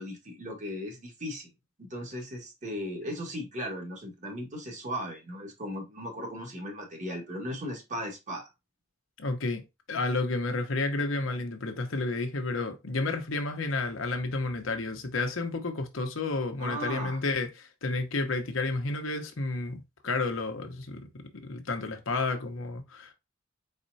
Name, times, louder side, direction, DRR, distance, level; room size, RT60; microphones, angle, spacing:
voice 1, 0.0-1.5 1.8-8.5 16.6-17.2, equal, 40° right, 1.7 m, -37 dB
voice 2, 9.2-23.1, left 3 dB, 85° left, 1.0 m, -31 dB
4.3 x 4.2 x 2.7 m
head